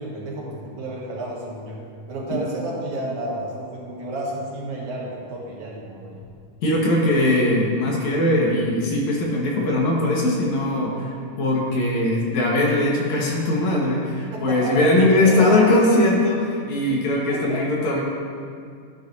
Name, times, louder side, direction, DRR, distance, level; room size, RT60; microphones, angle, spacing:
voice 1, 0.0-1.8 2.1-6.2 14.2-15.6 17.3-17.7, right 1 dB, 70° right, -4 dB, 2.9 m, -31 dB
voice 2, 6.6-18.0, left 1 dB, 65° left, -3 dB, 2.7 m, -20 dB
13.0 x 10.5 x 2.7 m, 2.2 s
omnidirectional pair, 3.6 m